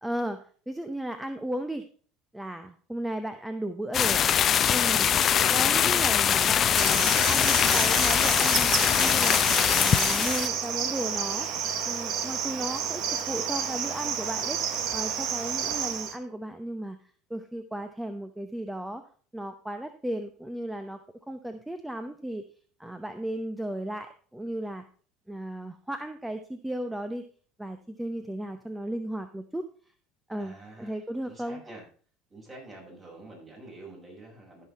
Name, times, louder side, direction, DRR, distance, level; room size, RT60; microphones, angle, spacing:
voice 1, 0.0-1.8 2.3-4.3 4.7-5.2 5.5-11.5 11.8-14.6 14.9-17.0 17.3-19.0 19.3-21.0 21.3-22.5 22.8-24.8 25.3-27.2 27.6-29.6 30.3-31.6, right 1 dB, 5° right, 9 dB, 0.8 m, -35 dB
sound 1, 3.9-10.5, left 9 dB, 40° left, 0.6 m, -22 dB
Cricket, 6.8-16.2, right 8 dB, 60° right, 1.3 m, -30 dB
voice 2, 30.4-31.8 32.3-34.7, right 2 dB, 30° right, -2 dB, 6.3 m, -47 dB
14.0 x 5.9 x 4.2 m, 0.42 s
supercardioid pair, 100°, 0 cm